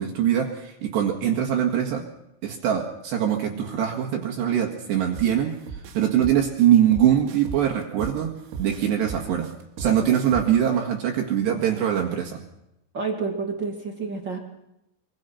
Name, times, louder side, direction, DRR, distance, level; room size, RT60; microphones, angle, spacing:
voice 1, 0.0-2.0 2.4-5.6 6.0-8.3 8.6-9.5 9.8-12.4, right 9 dB, 65° right, 1 dB, 3.8 m, -22 dB
sound 1, 5.1-5.3 5.7-8.2 8.5-10.7, right 7 dB, 85° right, 4.7 m, -35 dB
voice 2, 12.9-14.4, right 4 dB, 40° right, 3 dB, 1.7 m, -29 dB
24.5 x 23.5 x 5.8 m, 0.86 s
omnidirectional pair, 5.6 m